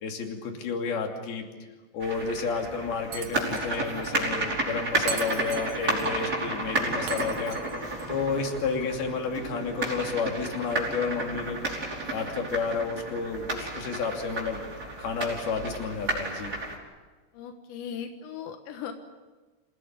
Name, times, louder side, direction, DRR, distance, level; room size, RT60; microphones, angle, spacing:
voice 1, 0.0-1.5 1.9-7.6 8.1-11.6 12.1-14.6 15.0-16.5, left 5 dB, 60° left, 3 dB, 4.6 m, -31 dB
sound 1, 2.0-16.8, right 2 dB, 20° right, 5.1 m, -32 dB
Shatter, 3.1-3.8 4.0-4.1 5.1-6.1 7.1-8.1, right 8 dB, 85° right, 1.4 m, -38 dB
voice 2, 17.3-18.9, left 8 dB, 90° left, 5 dB, 3.7 m, -38 dB
27.0 x 18.0 x 9.6 m, 1.3 s
omnidirectional pair, 5.0 m